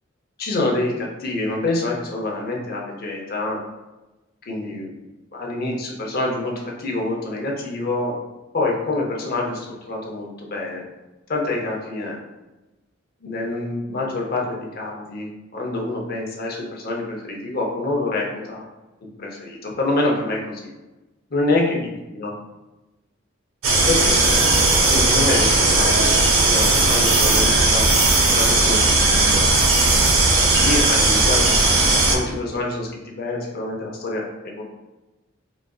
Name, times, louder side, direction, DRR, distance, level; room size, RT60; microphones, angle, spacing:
voice 1, 0.4-3.6 4.4-4.9 5.3-8.1 8.5-10.9 11.3-12.2 13.2-18.6 19.2-20.7 21.3-21.6 22.1-22.3 23.9-24.5 24.9-27.9 28.3-29.5 30.4-34.6, left 2 dB, 45° left, -1 dB, 0.6 m, -26 dB
sound 1, 23.6-32.2, right 2 dB, 80° right, 0.6 m, -17 dB
3.8 x 2.5 x 2.2 m, 1.1 s
head